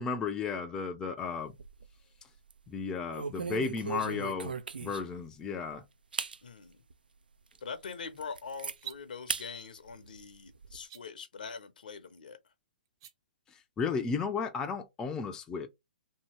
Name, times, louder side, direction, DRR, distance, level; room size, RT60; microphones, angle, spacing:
voice 1, 0.0-1.5 2.7-4.5 4.8-5.8 13.8-15.7, left 5 dB, 15° left, 0.4 m, -34 dB
sound 1, 1.3-2.0 2.4-2.6 3.1-5.2 5.7-5.8 6.1-6.4 6.9-7.0 7.5-7.6 7.9-8.8 9.3-9.5 9.9-10.8, right 5 dB, 80° right, 0.3 m, -38 dB
voice 2, 6.4-6.8 7.6-12.4, left 5 dB, 70° left, 0.6 m, -43 dB
sound 2, 8.7-9.0 10.8-11.0 12.8-13.1, right 11 dB, 35° right, 0.6 m, -45 dB
2.8 x 2.7 x 2.9 m
figure-of-eight pair, 130°, 5 cm